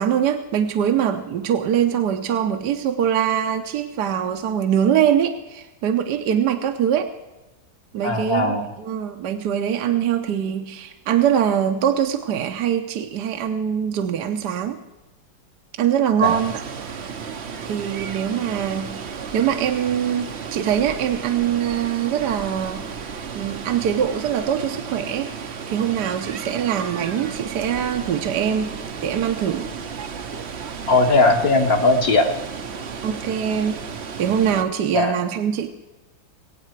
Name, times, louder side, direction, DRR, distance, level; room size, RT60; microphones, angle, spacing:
voice 1, 0.0-7.1 7.9-14.8 15.8-16.6 17.6-19.1 19.3-22.8 23.3-28.7 29.0-29.7 33.0-33.8 34.2-35.7, right 9 dB, 70° right, 6 dB, 1.4 m, -23 dB
voice 2, 8.0-8.7 16.2-16.4 30.9-32.3 34.9-35.1, left 2 dB, 55° left, 3 dB, 2.0 m, -18 dB
Water, 16.2-34.6, right 6 dB, 50° right, 0.9 m, -33 dB
22.5 x 8.7 x 4.6 m, 1.1 s
omnidirectional pair, 2.0 m